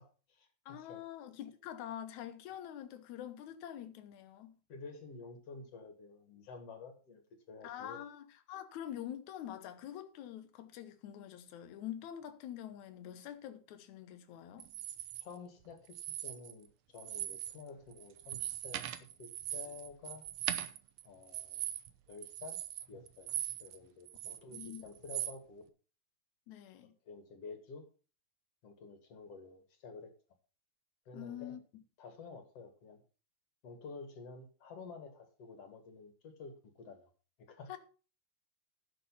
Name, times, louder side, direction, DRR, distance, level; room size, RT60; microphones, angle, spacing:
voice 1, 0.0-1.0 4.7-8.0 15.2-18.8 19.2-20.3 21.0-21.7 22.1-22.6 22.9-23.3 23.6-25.7 27.1-27.9 28.6-30.1 31.1-31.6 32.0-33.0 33.6-37.1 37.5-37.7, left 4 dB, 50° left, 2.5 m, -50 dB
voice 2, 0.7-4.6 7.6-14.7 24.5-24.8 26.5-26.9 31.1-31.8 37.7-37.8, left 11 dB, 65° left, 2.2 m, -46 dB
sound 1, 14.6-15.2 15.9-16.7 17.0-17.6 17.9-23.8 24.1-25.4, right 12 dB, 80° right, 1.5 m, -40 dB
11.5 x 7.0 x 5.6 m
omnidirectional pair, 3.9 m